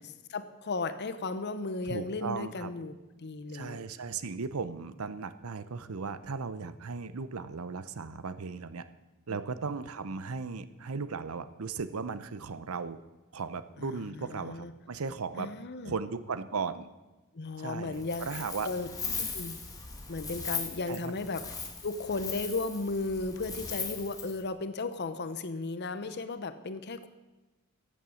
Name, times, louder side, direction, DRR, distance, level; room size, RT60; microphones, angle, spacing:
voice 1, 0.3-3.8 9.3-9.4 13.8-14.7 15.4-16.0 17.3-18.9 19.2-19.6 20.1-21.4 21.8-27.1, left 3 dB, 50° left, 11 dB, 0.8 m, -35 dB
voice 2, 1.9-2.7 3.5-8.8 9.3-13.0 13.3-15.5 15.8-16.9 17.6-18.7 20.9-21.1, right 4 dB, 85° right, 13 dB, 0.7 m, -36 dB
Wind, 17.9-24.4, left 5 dB, 15° left, 1.8 m, -39 dB
14.5 x 8.6 x 6.4 m, 1.1 s
head